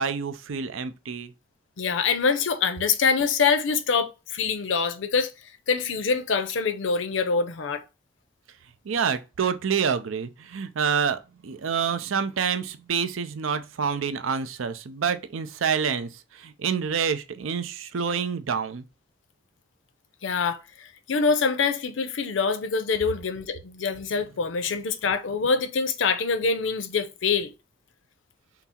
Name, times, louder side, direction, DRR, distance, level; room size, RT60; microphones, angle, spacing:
voice 1, 0.0-1.3 8.9-18.8, right 6 dB, 90° right, 0.5 m, -27 dB
voice 2, 1.8-5.3 5.7-7.8 20.2-27.5, left 5 dB, 75° left, 0.6 m, -25 dB
5.8 x 2.0 x 4.3 m
head